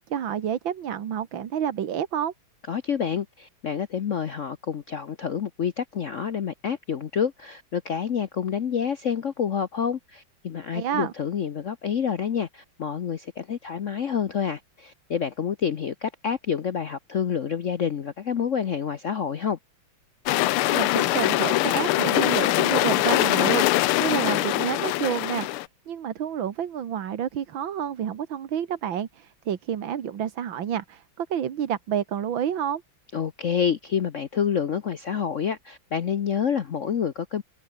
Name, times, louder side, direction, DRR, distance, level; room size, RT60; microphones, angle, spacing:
voice 1, 0.0-2.3 10.7-11.1 20.7-32.8, right 9 dB, 65° right, 2.1 m, -29 dB
voice 2, 2.7-19.6 33.1-37.4, left 7 dB, 60° left, 0.8 m, -28 dB
sound 1, 20.3-25.7, left 16 dB, 85° left, 1.6 m, -23 dB
omnidirectional pair, 2.4 m